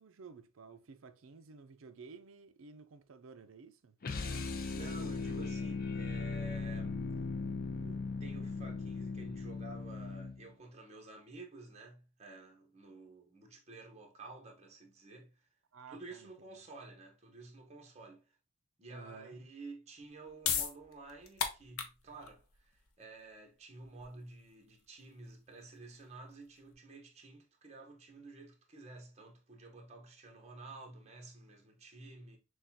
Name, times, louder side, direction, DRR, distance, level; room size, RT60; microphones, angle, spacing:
voice 1, 0.0-4.0 15.7-16.3 18.9-19.4, right 5 dB, 65° right, 0.5 m, -53 dB
sound 1, 4.0-10.5, left 4 dB, 45° left, 0.4 m, -38 dB
voice 2, 4.7-7.0 7.8-15.5 15.9-18.3 18.8-32.4, right 2 dB, 30° right, 1.0 m, -51 dB
sound 2, 20.0-26.7, left 7 dB, 85° left, 0.7 m, -40 dB
6.3 x 2.3 x 2.7 m
head